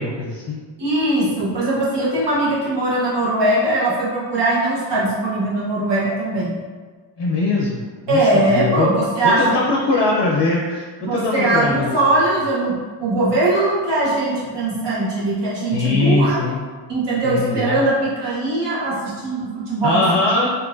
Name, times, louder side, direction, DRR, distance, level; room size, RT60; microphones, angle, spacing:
voice 1, 0.0-0.6 7.2-8.9 9.2-12.0 15.7-16.6 17.2-17.8 19.8-20.5, left 3 dB, 60° left, -2 dB, 0.5 m, -21 dB
voice 2, 0.8-6.6 8.1-9.4 9.9-10.0 11.0-16.4 16.9-20.1, right 2 dB, 65° right, -7 dB, 1.1 m, -20 dB
3.7 x 2.7 x 2.5 m, 1.5 s
cardioid pair, 80°, 45 cm